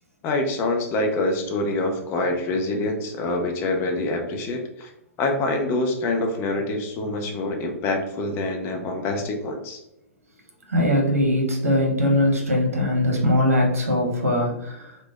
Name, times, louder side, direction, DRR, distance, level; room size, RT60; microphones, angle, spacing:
voice 1, 0.2-4.9 5.2-9.8, left 2 dB, 30° left, 3 dB, 0.5 m, -25 dB
voice 2, 10.7-14.9, left 1 dB, 70° right, 0 dB, 0.8 m, -21 dB
3.2 x 2.1 x 2.3 m, 0.86 s
figure-of-eight pair, 105°, 8 cm